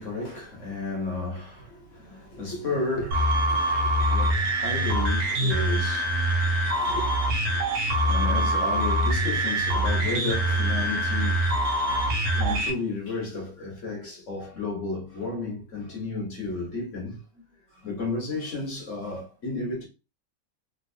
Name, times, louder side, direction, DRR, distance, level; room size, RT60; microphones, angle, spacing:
voice 1, 0.0-6.2 6.7-7.1 7.5-7.6 8.0-11.5 12.3-17.2 17.8-19.8, left 3 dB, 50° left, 1.3 m, -33 dB
sound 1, 3.1-12.7, right 1 dB, 85° right, 1.4 m, -24 dB
3.5 x 2.7 x 2.7 m
omnidirectional pair, 1.9 m